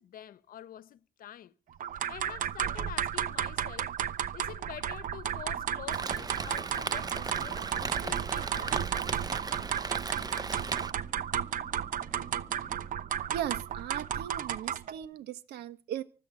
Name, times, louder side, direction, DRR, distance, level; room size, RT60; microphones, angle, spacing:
voice 1, 0.0-1.5 2.1-3.9 4.3-8.9, left 11 dB, 55° left, 1.0 m, -46 dB
sound 1, 1.8-15.0, right 9 dB, 50° right, 0.9 m, -33 dB
sound 2, 5.5-13.0, equal, 5° right, 1.6 m, -54 dB
Rain, 5.9-10.9, right 4 dB, 25° right, 0.8 m, -37 dB
voice 2, 13.3-16.0, right 10 dB, 75° right, 1.4 m, -37 dB
24.5 x 8.5 x 5.2 m
cardioid pair, 110°, 17 cm